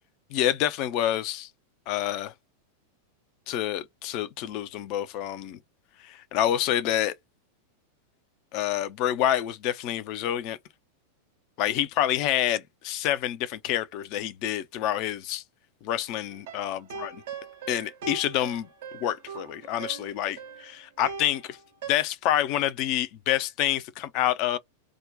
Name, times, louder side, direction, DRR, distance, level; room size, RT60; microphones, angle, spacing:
voice 1, 0.3-1.5 1.9-2.3 3.5-5.6 6.0-7.1 8.5-10.6 11.6-15.4 15.8-17.1 17.7-21.6 21.9-24.6, left 12 dB, 40° left, 0.5 m, -27 dB
sound 1, 16.3-21.9, right 5 dB, 55° right, 0.5 m, -41 dB
2.4 x 2.2 x 3.7 m
figure-of-eight pair, 90°, 0 cm